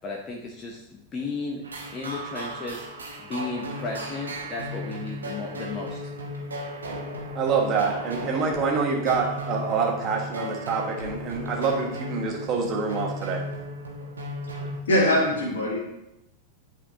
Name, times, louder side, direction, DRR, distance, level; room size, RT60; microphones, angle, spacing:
voice 1, 0.0-1.6 1.9-2.9 3.2-6.0, left 3 dB, 25° left, -1 dB, 0.9 m, -34 dB
sound 1, 1.6-14.8, equal, 75° right, 1.4 m, -35 dB
voice 2, 7.4-13.4, right 5 dB, 30° right, 0 dB, 1.6 m, -26 dB
voice 3, 14.9-15.8, left 1 dB, 60° left, -4 dB, 1.7 m, -22 dB
11.0 x 4.5 x 2.9 m, 0.88 s
figure-of-eight pair, 90°, 0 cm